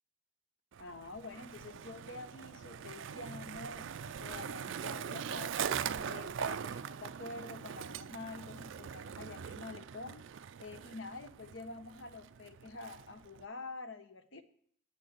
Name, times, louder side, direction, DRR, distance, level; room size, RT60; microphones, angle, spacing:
Skateboard, 0.7-13.4, right 7 dB, 75° right, 0.4 m, -42 dB
voice 1, 0.8-5.6 6.0-10.2 10.6-14.4, left 3 dB, 75° left, 10 dB, 1.0 m, -47 dB
9.3 x 6.4 x 8.1 m, 0.62 s
head